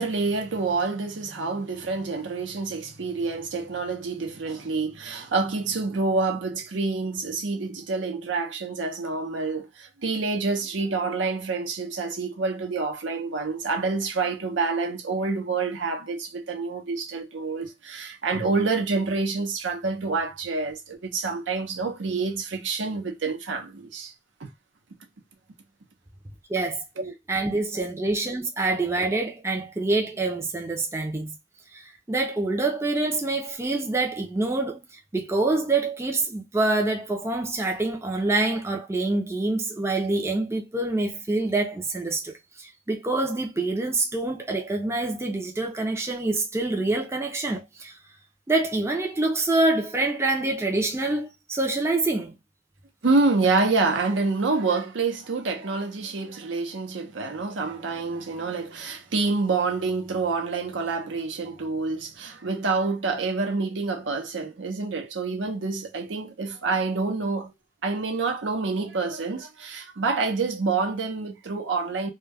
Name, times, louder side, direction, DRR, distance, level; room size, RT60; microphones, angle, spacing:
voice 1, 0.0-24.1 24.4-24.5 27.0-27.1 53.0-67.5 67.8-72.1, right 3 dB, 80° right, 0.6 m, -27 dB
voice 2, 26.5-26.8 27.3-31.4 31.7-34.9 35.1-48.0 48.5-52.4, right 2 dB, 15° right, 0.4 m, -26 dB
2.2 x 2.1 x 3.4 m
head